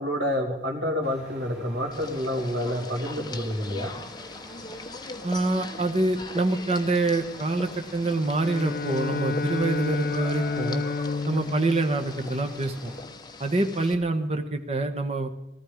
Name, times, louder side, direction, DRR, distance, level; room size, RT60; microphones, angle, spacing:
voice 1, 0.0-3.9, left 1 dB, 75° right, 1 dB, 3.2 m, -28 dB
Truck, 1.0-13.0, equal, 5° right, 6.4 m, -49 dB
sound 1, 1.9-13.9, left 2 dB, 20° left, 1.0 m, -40 dB
voice 2, 5.2-10.8 11.3-12.9 13.4-15.4, right 2 dB, 35° right, 5 dB, 1.3 m, -26 dB
Bowed string instrument, 8.4-13.1, left 4 dB, 50° left, 0.5 m, -31 dB
18.5 x 13.5 x 5.1 m, 0.91 s
head